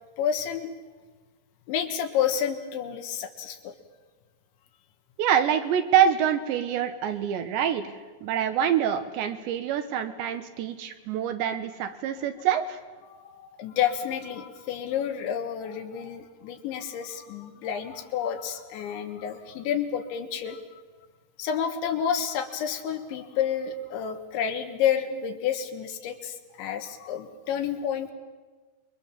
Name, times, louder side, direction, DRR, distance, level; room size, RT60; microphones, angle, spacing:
voice 1, 0.2-0.7 1.7-3.8 13.1-20.6 21.4-28.1, left 8 dB, 75° left, 6 dB, 3.7 m, -30 dB
voice 2, 5.2-12.8, right 9 dB, 70° right, 8 dB, 3.2 m, -26 dB
28.0 x 23.0 x 7.3 m, 1.3 s
omnidirectional pair, 5.7 m